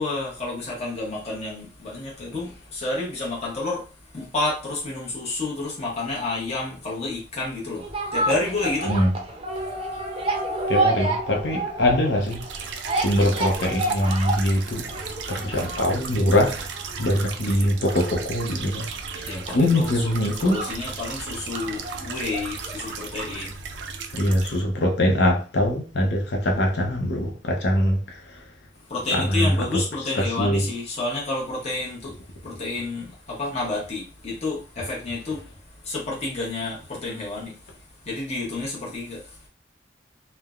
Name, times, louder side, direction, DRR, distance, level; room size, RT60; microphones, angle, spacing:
voice 1, 0.0-8.9 19.3-20.1 20.4-23.6 24.0-24.2 28.9-32.2 32.4-35.4 35.8-37.7 38.0-39.5, left 2 dB, 40° left, 0.8 m, -30 dB
sound 1, 7.8-23.0 23.3-23.4, right 2 dB, 35° right, 0.5 m, -30 dB
voice 2, 10.7-16.6 17.0-18.9 19.1-20.6 24.1-28.4 29.1-29.8 30.1-30.7, left 1 dB, 70° left, 0.7 m, -23 dB
sound 2, 12.2-24.6, right 5 dB, 85° right, 0.4 m, -36 dB
3.2 x 2.1 x 2.4 m
head